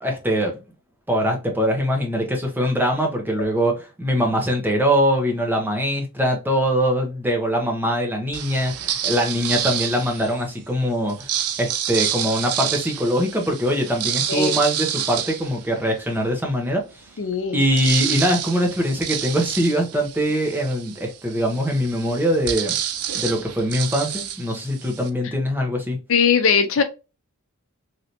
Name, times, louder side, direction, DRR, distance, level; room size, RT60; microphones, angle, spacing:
voice 1, 0.0-0.6 1.1-11.3 11.6-17.0 17.5-22.8 23.1-26.0, equal, 10° right, 0.7 m, -22 dB
sound 1, 8.3-10.5 11.1-16.3 16.8-16.9 17.1-25.1, right 10 dB, 90° right, 0.5 m, -28 dB
voice 2, 17.2-17.6 26.1-26.8, left 6 dB, 60° left, 0.5 m, -19 dB
3.2 x 2.7 x 2.7 m
head